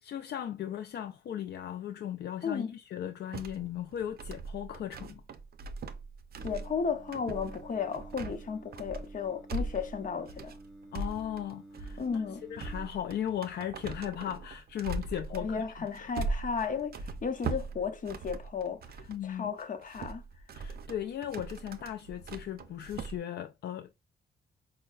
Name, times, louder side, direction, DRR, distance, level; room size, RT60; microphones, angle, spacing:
voice 1, 0.0-5.2 10.9-15.6 19.1-19.5 20.5-23.9, left 10 dB, 65° left, 0.4 m, -37 dB
sound 1, 3.3-19.2 19.6-23.2, right 3 dB, 60° right, 0.5 m, -40 dB
voice 2, 6.4-10.6 12.0-12.4 15.3-20.2, left 6 dB, 45° left, 0.8 m, -34 dB
Singing, 6.4-12.9, right 1 dB, ahead, 0.7 m, -51 dB
5.3 x 2.1 x 2.3 m
cardioid pair, 85°, 18 cm